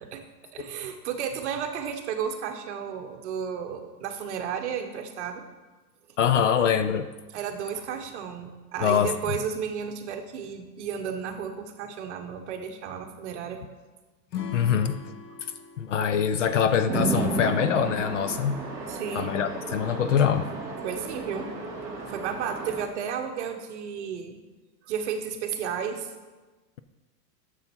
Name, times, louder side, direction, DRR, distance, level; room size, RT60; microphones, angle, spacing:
voice 1, 0.5-5.4 7.3-13.6 18.9-19.3 20.8-21.5 22.1-24.4 24.8-26.1, right 7 dB, 45° right, 5 dB, 1.1 m, -33 dB
voice 2, 6.2-7.1 8.8-9.2 14.5-15.0 15.8-18.6 19.1-20.5, left 8 dB, 50° left, 11 dB, 0.5 m, -24 dB
Acoustic guitar / Strum, 14.3-17.6, left 7 dB, 80° left, 1.6 m, -40 dB
Chatter / Traffic noise roadway noise / Train, 16.9-22.8, right 2 dB, 5° right, 0.7 m, -33 dB
10.5 x 7.2 x 4.4 m, 1.2 s
supercardioid pair, 170°, 49 cm